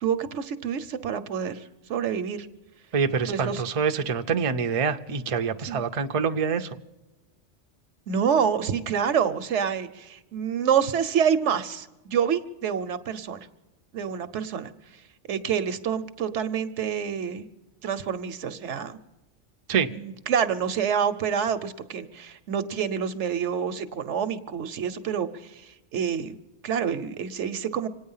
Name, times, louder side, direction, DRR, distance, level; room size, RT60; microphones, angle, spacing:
voice 1, 0.0-2.5 3.3-3.6 5.6-5.8 8.1-13.5 13.9-14.7 15.3-17.5 17.8-19.0 19.9-26.4 26.6-27.9, right 7 dB, 75° right, 11 dB, 1.1 m, -27 dB
voice 2, 2.9-6.8 19.7-19.9, right 6 dB, 35° right, 6 dB, 0.6 m, -26 dB
26.0 x 9.4 x 5.5 m, 1.0 s
omnidirectional pair, 1.2 m